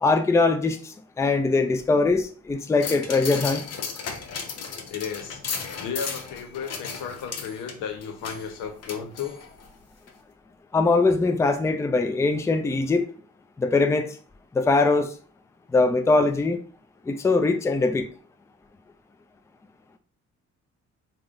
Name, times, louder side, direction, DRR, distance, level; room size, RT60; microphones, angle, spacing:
voice 1, 0.0-3.6 10.7-13.1 13.6-14.2 14.5-15.1 15.7-16.6 17.1-18.1, left 3 dB, 10° left, 0.4 m, -22 dB
sound 1, 2.8-9.7 10.1-10.2, left 5 dB, 55° left, 0.8 m, -35 dB
voice 2, 4.9-5.4 5.8-9.4, left 7 dB, 85° left, 0.8 m, -34 dB
3.5 x 2.2 x 3.6 m
cardioid pair, 90°, 30 cm